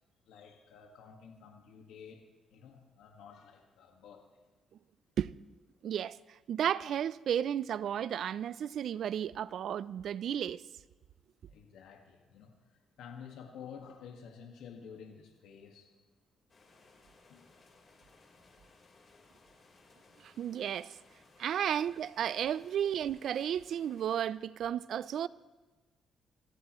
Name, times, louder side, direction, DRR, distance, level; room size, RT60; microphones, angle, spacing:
voice 1, 0.2-4.3 11.5-15.9 17.3-17.5 21.5-21.6 22.6-22.7, left 7 dB, 85° left, 1.7 m, -51 dB
voice 2, 5.8-6.2 6.5-10.6 20.2-20.9 21.4-25.3, right 9 dB, 65° right, 0.4 m, -33 dB
sound 1, 16.5-24.3, left 3 dB, 40° left, 4.1 m, -62 dB
26.0 x 15.0 x 3.1 m
cardioid pair, 90°, 0 cm